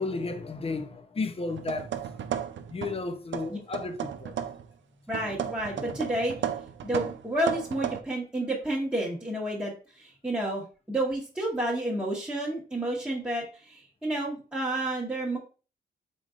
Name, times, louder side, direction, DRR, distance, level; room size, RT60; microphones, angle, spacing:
voice 1, 0.0-1.9 2.7-4.4 5.7-6.0, left 3 dB, 30° left, 0.6 m, -33 dB
sound 1, 1.5-3.0 3.3-4.7 5.1-8.0, right 9 dB, 70° right, 0.5 m, -34 dB
voice 2, 5.1-6.3 6.8-9.7 10.0-15.4, right 1 dB, 5° right, 1.1 m, -30 dB
3.9 x 3.7 x 2.4 m
cardioid pair, 80°, 20 cm